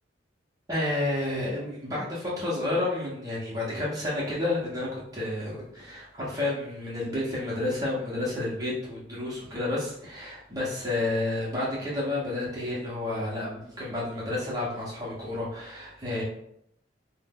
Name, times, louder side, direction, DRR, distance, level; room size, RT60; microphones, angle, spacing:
voice 1, 0.7-16.2, left 2 dB, 20° right, -6 dB, 0.7 m, -30 dB
2.5 x 2.0 x 3.5 m, 0.74 s
head